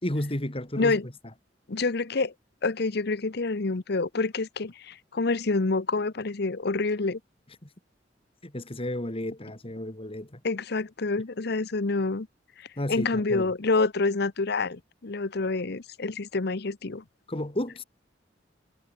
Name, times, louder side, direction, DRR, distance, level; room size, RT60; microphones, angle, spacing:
voice 1, 0.0-1.0 7.6-7.7 8.4-10.4 12.8-13.5 17.3-17.8, left 1 dB, 30° left, 2.8 m, -32 dB
voice 2, 1.7-2.3 2.6-7.2 10.4-12.3 12.6-17.0, left 3 dB, 60° left, 0.9 m, -27 dB
head